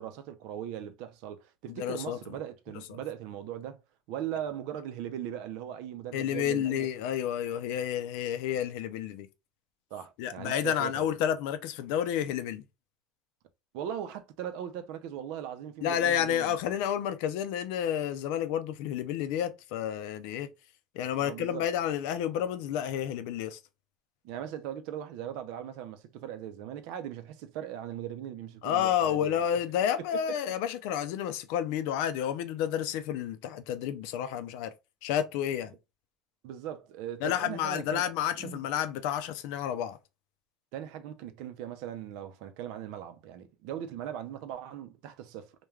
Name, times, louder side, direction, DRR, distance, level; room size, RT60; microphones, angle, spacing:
voice 1, 0.0-3.8 4.1-6.9 9.9-11.1 13.7-16.8 21.2-21.7 24.2-29.4 30.0-30.5 36.4-38.0 38.3-38.7 40.7-45.5, right 10 dB, 75° right, 0.4 m, -39 dB
voice 2, 1.8-2.2 2.9-3.0 6.1-9.3 10.2-12.6 15.8-20.5 20.9-23.6 28.6-34.7 35.0-35.7 37.2-40.0, left 10 dB, 80° left, 0.4 m, -30 dB
2.3 x 2.2 x 3.1 m
cardioid pair, 135°, 0 cm